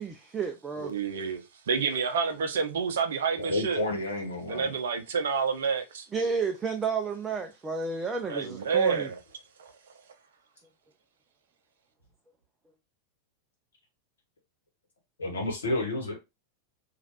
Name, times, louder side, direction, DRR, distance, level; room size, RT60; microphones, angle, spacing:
voice 1, 0.0-0.9 6.1-9.1, right 5 dB, 15° right, 0.4 m, -31 dB
voice 2, 0.8-3.8 4.5-6.1 8.3-9.2, right 5 dB, 60° right, 0.6 m, -29 dB
voice 3, 3.4-4.7 15.2-16.2, left 2 dB, 70° left, 1.2 m, -30 dB
3.0 x 2.4 x 2.8 m
figure-of-eight pair, 90°, 0 cm